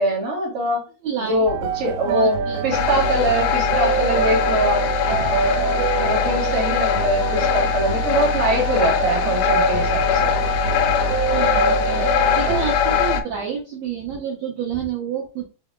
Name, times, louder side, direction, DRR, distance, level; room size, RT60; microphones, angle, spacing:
voice 1, 0.0-0.9 1.2-4.9 5.9-10.4, right 1 dB, 35° right, -2 dB, 1.1 m, -23 dB
voice 2, 1.0-1.5 2.1-2.7 5.1-5.3 11.3-15.4, right 8 dB, 70° right, -3 dB, 1.7 m, -29 dB
sound 1, 1.5-12.6, right 6 dB, 90° right, 2.5 m, -26 dB
sound 2, 2.7-13.2, left 6 dB, 80° left, 2.3 m, -21 dB
4.9 x 4.1 x 2.3 m, 0.31 s
omnidirectional pair, 4.3 m